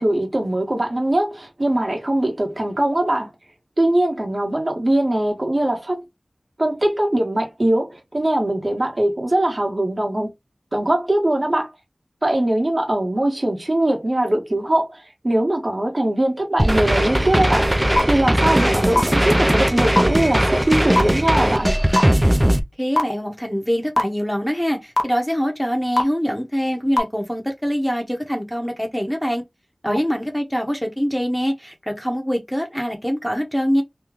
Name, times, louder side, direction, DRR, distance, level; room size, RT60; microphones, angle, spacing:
voice 1, 0.0-3.3 3.8-6.0 6.6-10.3 10.7-11.7 12.2-17.7 18.0-21.7 29.8-30.0, right 1 dB, 50° right, 1.3 m, -21 dB
sound 1, 16.6-22.6, right 1 dB, 20° right, 0.5 m, -18 dB
sound 2, 18.0-18.1 18.9-19.0 19.9-20.0 21.0-21.1 22.0-22.1 23.0-23.1 24.0-24.1 25.0-25.1 26.0-26.1 27.0-27.1, left 1 dB, 65° left, 0.8 m, -16 dB
voice 2, 22.8-29.4 29.8-33.8, equal, ahead, 0.9 m, -24 dB
3.1 x 2.2 x 3.6 m
wide cardioid pair, 55°, 0 cm